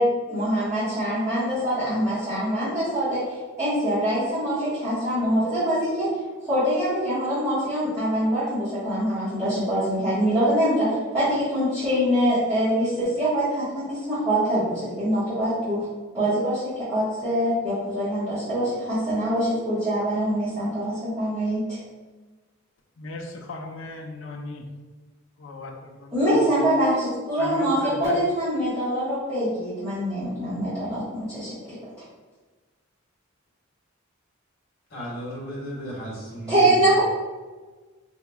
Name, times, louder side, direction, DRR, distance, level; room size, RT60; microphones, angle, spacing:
voice 1, 0.0-6.1 6.4-15.9 16.1-21.8 26.1-31.7 36.5-37.0, equal, 15° right, -15 dB, 1.4 m, -24 dB
voice 2, 23.0-24.6 25.4-26.1 27.4-28.2, left 2 dB, 65° left, 2 dB, 0.5 m, -36 dB
voice 3, 34.9-36.8, equal, 50° left, -6 dB, 1.4 m, -34 dB
4.6 x 2.8 x 2.3 m, 1.3 s
head